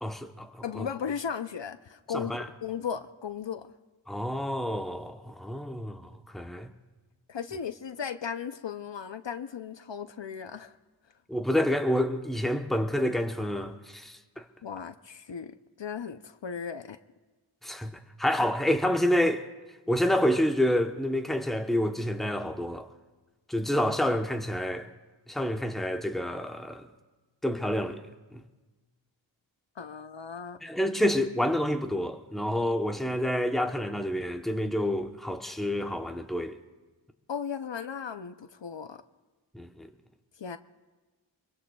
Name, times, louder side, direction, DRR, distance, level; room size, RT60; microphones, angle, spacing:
voice 1, 0.0-0.9 2.1-2.4 4.1-6.7 11.3-14.4 17.6-19.5 19.9-22.9 23.5-24.9 25.3-26.9 27.4-28.0 28.3-28.4 30.6-36.5 39.5-39.9, left 1 dB, ahead, 0.9 m, -28 dB
voice 2, 0.6-2.3 2.6-3.7 7.3-10.8 14.6-17.0 29.8-30.6 37.3-39.0 40.4-40.6, left 7 dB, 65° left, 0.7 m, -36 dB
27.0 x 22.5 x 2.3 m
wide cardioid pair, 55°, 47 cm